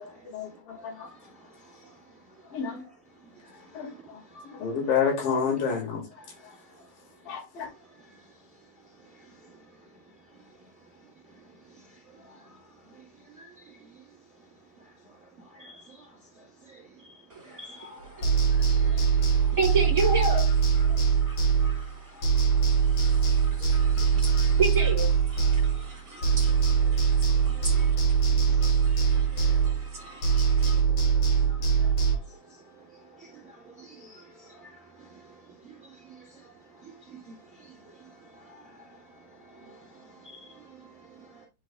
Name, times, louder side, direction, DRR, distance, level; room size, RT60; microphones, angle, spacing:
voice 1, 0.0-1.1 2.5-2.8 3.8-4.2 4.5-6.0 7.3-7.7, left 6 dB, 65° left, 3.6 m, -29 dB
voice 2, 0.9-1.9 2.6-2.9 3.4-4.0 4.3-4.5 6.4-6.5 8.1-8.2 12.2-12.5 13.3-13.9 15.5-16.1 16.7-19.0 20.8-21.3 21.6-21.7 22.1-22.3 23.1-23.2 23.6-24.4 26.2-26.9 27.5-27.9 28.4-28.7 29.1-29.7 30.1-30.2 30.9-32.6 33.2-35.3 35.6-36.5 36.8-39.0 39.3-41.4, right 1 dB, 60° right, 0.8 m, -51 dB
voice 3, 18.1-30.8, right 4 dB, 10° right, 3.6 m, -34 dB
sound 1, 18.2-22.0 22.2-26.0 26.2-30.0 30.2-32.2, right 6 dB, 40° left, 3.4 m, -23 dB
9.1 x 5.8 x 2.3 m
omnidirectional pair, 4.5 m